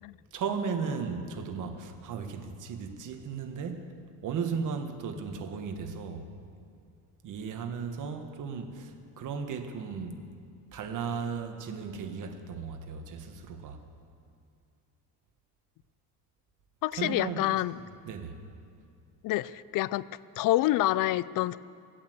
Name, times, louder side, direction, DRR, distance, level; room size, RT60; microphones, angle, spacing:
voice 1, 0.3-3.9 4.2-6.3 7.2-10.2 10.7-13.8 16.9-17.4 18.0-18.4, right 5 dB, 55° right, 1.6 m, -35 dB
voice 2, 16.8-17.8 19.2-20.0 20.4-21.6, left 16 dB, 60° left, 0.5 m, -27 dB
17.0 x 8.6 x 7.9 m
cardioid pair, 120°, 38 cm